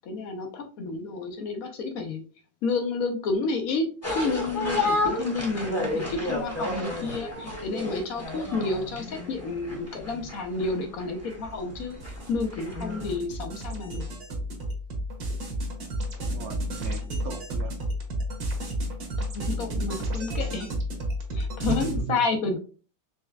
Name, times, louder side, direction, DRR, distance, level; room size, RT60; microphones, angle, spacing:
voice 1, 0.0-2.2 2.6-12.0 12.3-14.1 19.2-20.7 21.3-22.6, left 3 dB, 70° left, 3 dB, 0.8 m, -30 dB
sound 1, 4.0-13.2, left 2 dB, 10° left, 0.8 m, -32 dB
sound 2, 11.3-22.0, equal, 55° right, 1.4 m, -32 dB
voice 2, 16.2-17.8 21.7-22.2, right 9 dB, 90° right, 4 dB, 0.7 m, -36 dB
4.2 x 3.3 x 2.3 m, 0.38 s
omnidirectional pair, 2.1 m